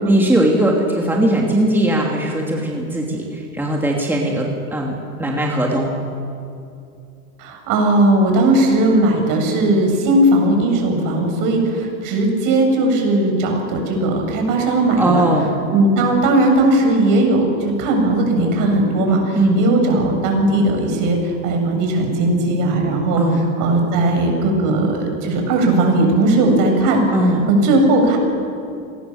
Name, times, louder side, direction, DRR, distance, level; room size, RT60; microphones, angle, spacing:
voice 1, 0.1-6.0 14.9-15.7 19.4-19.6 23.2-23.5 27.1-27.5, right 1 dB, 5° right, -1 dB, 2.8 m, -19 dB
voice 2, 7.4-15.3 15.7-27.0 27.5-28.2, right 2 dB, 50° right, 3 dB, 7.2 m, -17 dB
26.5 x 19.5 x 7.3 m, 2.5 s
supercardioid pair, 125°, 42 cm